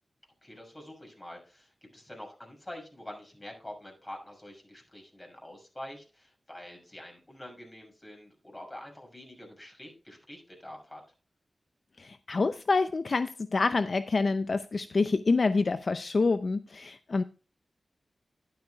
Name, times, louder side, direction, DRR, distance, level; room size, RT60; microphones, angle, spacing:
voice 1, 0.4-11.0, left 1 dB, 25° left, 2 dB, 6.5 m, -46 dB
voice 2, 12.0-17.2, left 3 dB, 60° left, 11 dB, 0.5 m, -27 dB
11.5 x 11.5 x 2.3 m, 0.34 s
cardioid pair, 50°, 0 cm